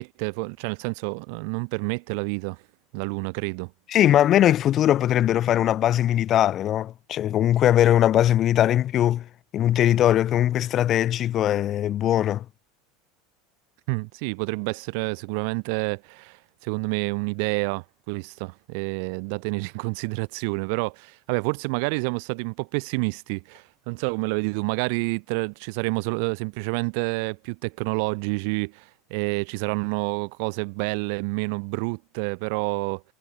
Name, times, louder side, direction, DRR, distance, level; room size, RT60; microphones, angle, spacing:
voice 1, 0.0-2.6 2.9-3.7 13.9-33.0, right 36 dB, 70° right, 0.4 m, -28 dB
voice 2, 3.9-9.3 9.5-12.5, left 11 dB, 40° left, 0.4 m, -20 dB
supercardioid pair, 120°, 0 cm